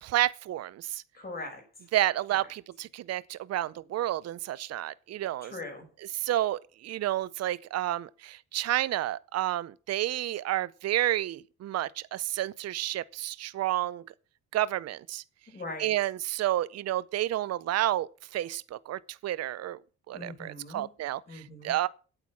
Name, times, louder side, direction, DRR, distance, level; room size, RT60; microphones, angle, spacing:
voice 1, 0.0-1.0 1.9-5.5 6.1-14.0 14.5-15.2 15.8-19.8 20.1-21.9, right 14 dB, 55° right, 0.6 m, -30 dB
voice 2, 1.1-1.6 5.4-5.8 15.5-15.9 20.1-20.9 21.3-21.7, left 2 dB, 30° left, 5.8 m, -41 dB
8.7 x 8.5 x 7.3 m
cardioid pair, 90°, 30 cm